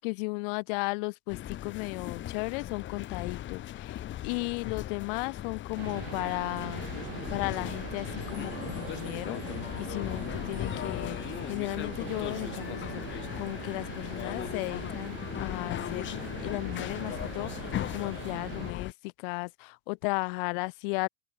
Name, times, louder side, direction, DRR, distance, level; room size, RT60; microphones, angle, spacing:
voice 1, 0.0-6.8 7.3-21.1, left 30 dB, 55° left, 0.7 m, -35 dB
sound 1, 1.3-18.9, left 12 dB, 35° left, 1.3 m, -38 dB
sound 2, 5.8-18.7, right 27 dB, 60° right, 1.0 m, -42 dB
open air
figure-of-eight pair, 75°, 32 cm